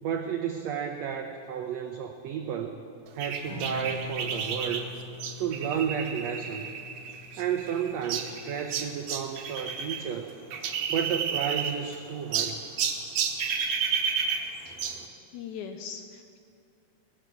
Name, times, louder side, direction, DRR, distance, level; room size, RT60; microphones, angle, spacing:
voice 1, 0.0-2.8 3.1-4.9 5.4-6.7 7.4-10.3 10.9-12.6, right 8 dB, 90° right, 4 dB, 1.5 m, -32 dB
sound 1, 3.2-10.0 10.3-12.0 12.3-15.0, right 6 dB, 65° right, 1.9 m, -31 dB
Strum, 3.4-9.7, left 4 dB, 35° left, 4.3 m, -44 dB
voice 2, 15.3-16.4, left 7 dB, 75° left, 6 dB, 1.9 m, -40 dB
18.0 x 11.0 x 6.8 m, 2.4 s
omnidirectional pair, 4.0 m